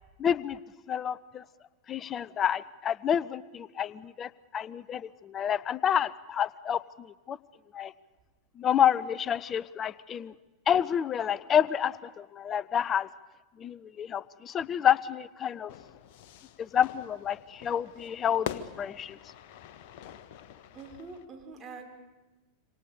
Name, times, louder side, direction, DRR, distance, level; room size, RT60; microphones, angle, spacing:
voice 1, 0.2-0.6 0.9-1.4 1.9-7.4 7.7-7.9 8.6-10.3 10.7-13.1 13.6-15.7 16.6-19.2, left 9 dB, 25° left, 20 dB, 0.7 m, -29 dB
Fire / Fireworks, 15.7-21.3, left 9 dB, 50° left, 1.2 m, -44 dB
voice 2, 20.7-21.9, right 4 dB, 20° right, 3 dB, 5.0 m, -44 dB
27.5 x 25.5 x 6.8 m, 1.2 s
figure-of-eight pair, 90°, 0 cm